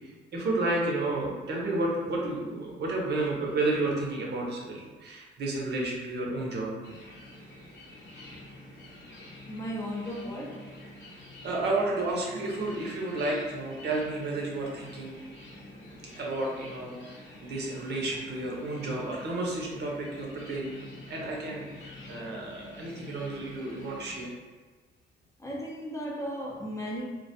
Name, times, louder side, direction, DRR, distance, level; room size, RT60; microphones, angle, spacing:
voice 1, 0.0-6.7 11.4-15.2 16.1-17.0 17.4-20.8 21.1-24.4, right 2 dB, 60° right, -2 dB, 0.7 m, -31 dB
sound 1, 6.8-24.3, left 1 dB, 65° left, 0.7 m, -48 dB
voice 2, 9.5-10.7 25.4-27.1, equal, 15° left, -3 dB, 0.5 m, -35 dB
2.3 x 2.1 x 2.7 m, 1.3 s
cardioid pair, 90°, 20 cm